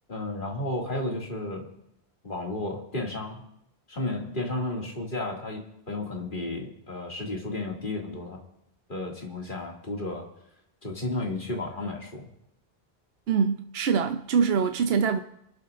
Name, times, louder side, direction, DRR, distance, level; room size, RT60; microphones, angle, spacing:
voice 1, 0.1-1.7 2.2-3.4 3.9-8.4 8.9-10.3 10.8-12.3, left 2 dB, 55° left, 2.5 m, -33 dB
voice 2, 13.3-15.2, right 6 dB, 75° right, 0.9 m, -24 dB
29.5 x 11.5 x 2.5 m
omnidirectional pair, 1.0 m